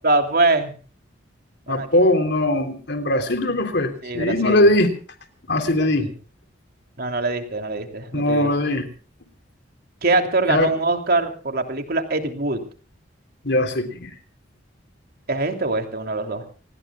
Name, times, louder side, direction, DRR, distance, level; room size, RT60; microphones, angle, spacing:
voice 1, 0.0-0.7 1.7-2.1 4.0-4.6 5.8-6.1 7.0-8.5 10.0-12.6 15.3-16.4, right 2 dB, 50° right, 5 dB, 3.1 m, -23 dB
voice 2, 1.7-4.9 5.5-6.1 8.1-8.9 10.5-10.7 13.4-14.1, left 1 dB, 60° left, 6 dB, 3.5 m, -20 dB
28.0 x 20.0 x 2.4 m, 0.39 s
head